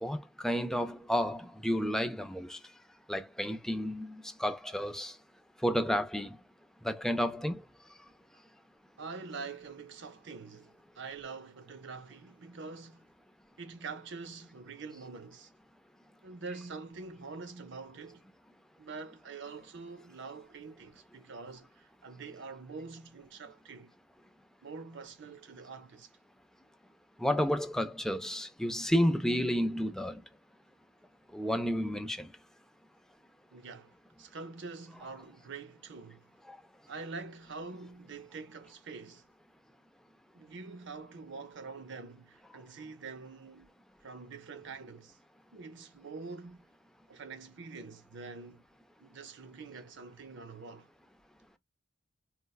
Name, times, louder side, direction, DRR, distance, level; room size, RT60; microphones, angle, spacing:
voice 1, 0.0-2.6 3.1-5.1 5.6-6.4 6.8-7.6 27.2-30.2 31.3-32.3 36.5-36.6, equal, 5° left, 0.4 m, -31 dB
voice 2, 9.0-13.1 13.6-15.5 16.2-18.2 18.8-23.9 24.6-26.1 33.5-36.3 36.9-39.3 40.3-43.7 44.0-45.2 45.5-46.7 47.1-48.6 49.0-50.9, right 4 dB, 60° right, 0.6 m, -45 dB
4.2 x 2.2 x 2.2 m
head